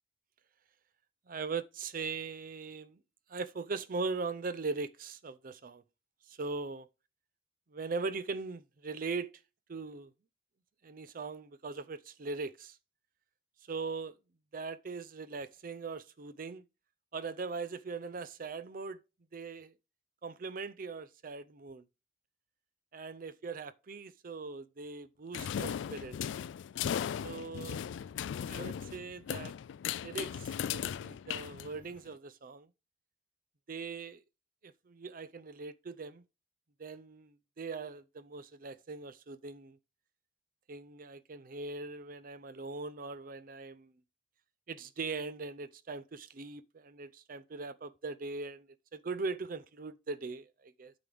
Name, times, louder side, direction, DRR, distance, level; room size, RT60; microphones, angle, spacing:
voice 1, 1.3-3.0 3.3-5.8 6.3-6.9 7.7-9.3 9.7-10.1 10.8-12.8 13.7-14.2 14.5-16.6 17.1-19.0 19.3-19.7 20.2-21.8 22.9-26.2 27.2-27.8 28.4-29.5 30.0-32.7 33.7-34.2 34.6-36.2 36.8-39.8 40.7-43.9 44.7-50.9, right 4 dB, 50° right, 0.5 m, -40 dB
sound 1, 25.3-32.1, left 9 dB, 85° left, 0.3 m, -37 dB
8.7 x 6.1 x 3.4 m
head